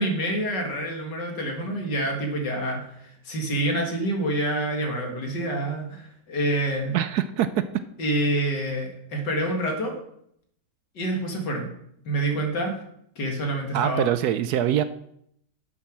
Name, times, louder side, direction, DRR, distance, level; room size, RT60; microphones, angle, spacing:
voice 1, 0.0-6.9 8.0-9.9 10.9-11.7 12.0-12.7 13.2-14.1, right 1 dB, 75° left, 2 dB, 2.7 m, -27 dB
voice 2, 6.9-7.7 13.7-14.8, right 10 dB, 70° right, 12 dB, 1.0 m, -23 dB
10.5 x 7.2 x 6.1 m, 0.72 s
omnidirectional pair, 1.9 m